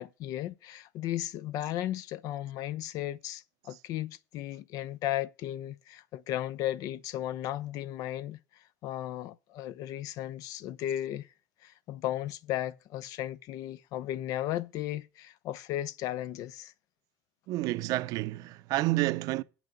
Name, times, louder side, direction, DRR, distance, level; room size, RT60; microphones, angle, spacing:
voice 1, 0.0-11.3 11.6-16.7, left 13 dB, 60° left, 0.7 m, -35 dB
voice 2, 17.5-19.4, right 18 dB, 65° right, 0.6 m, -29 dB
9.1 x 6.1 x 6.5 m
cardioid pair, 130°, 7 cm